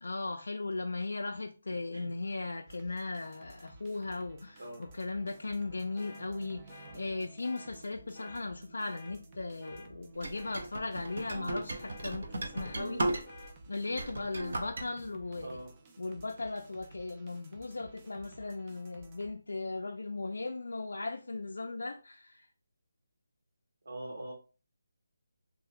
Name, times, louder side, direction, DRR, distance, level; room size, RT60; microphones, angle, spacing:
voice 1, 0.0-13.1 13.7-15.6 16.0-22.5, left 3 dB, 80° left, 0.3 m, -37 dB
sound 1, 2.7-19.3, right 2 dB, 20° right, 0.4 m, -54 dB
sound 2, 6.0-6.2 6.7-7.0 7.4-7.7 8.1-8.4 8.9-9.1 9.6-9.9 10.3-10.6 11.1-11.3 11.8-12.1 12.5-12.8 13.2-13.5, left 3 dB, 15° left, 0.7 m, -51 dB
sound 3, 10.2-13.5 13.9-14.9, right 2 dB, 65° right, 0.6 m, -36 dB
voice 2, 23.8-24.3, right 1 dB, 80° right, 1.0 m, -42 dB
2.7 x 2.1 x 3.1 m
figure-of-eight pair, 165°, 0 cm